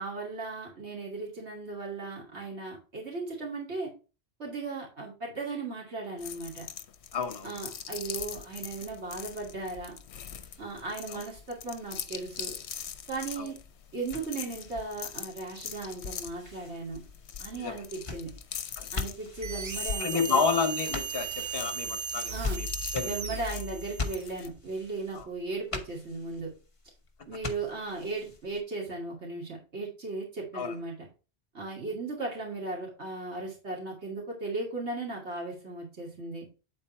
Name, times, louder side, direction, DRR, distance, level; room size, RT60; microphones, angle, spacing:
voice 1, 0.0-3.9 4.4-6.7 7.4-9.9 10.6-12.5 13.1-13.6 13.9-17.0 17.4-18.3 18.9-20.4 22.3-22.6 23.0-26.5 27.3-31.1 31.5-36.5, right 3 dB, 85° right, 2.7 m, -37 dB
sound 1, 6.2-24.5, left 8 dB, 80° left, 1.0 m, -42 dB
voice 2, 7.1-7.6 11.1-11.2 13.4-13.5 17.6-17.8 18.8-18.9 20.0-22.7 22.9-23.4 25.1-25.3 30.5-30.8, left 5 dB, 60° left, 1.3 m, -30 dB
sound 2, 10.4-28.6, left 3 dB, 30° left, 1.0 m, -43 dB
sound 3, 19.4-24.3, right 5 dB, 45° right, 0.4 m, -36 dB
9.0 x 4.2 x 4.3 m
omnidirectional pair, 1.1 m